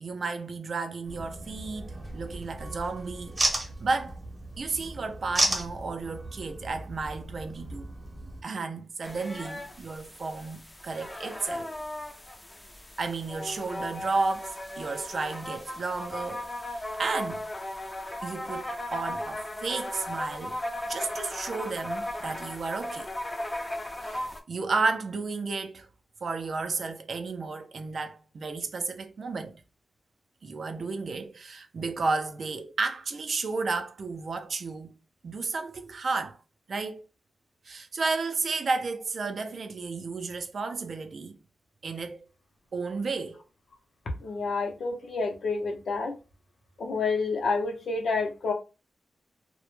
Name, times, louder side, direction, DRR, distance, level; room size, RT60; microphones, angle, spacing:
voice 1, 0.0-4.2 4.6-7.9 8.4-11.7 13.0-17.4 18.2-20.6 20.9-23.1 24.0-24.2 24.5-25.9 26.2-29.6 30.4-34.9 35.2-36.4 36.7-37.0 37.6-41.4 41.8-42.2 42.7-43.4, right 4 dB, 55° right, 0.3 m, -32 dB
sound 1, 1.1-8.4, right 2 dB, 30° right, 0.7 m, -34 dB
sound 2, 9.0-24.4, left 1 dB, 15° left, 0.3 m, -37 dB
voice 2, 44.2-46.1 46.8-48.5, left 4 dB, 75° left, 0.5 m, -29 dB
2.1 x 2.0 x 3.0 m
wide cardioid pair, 135°, 0 cm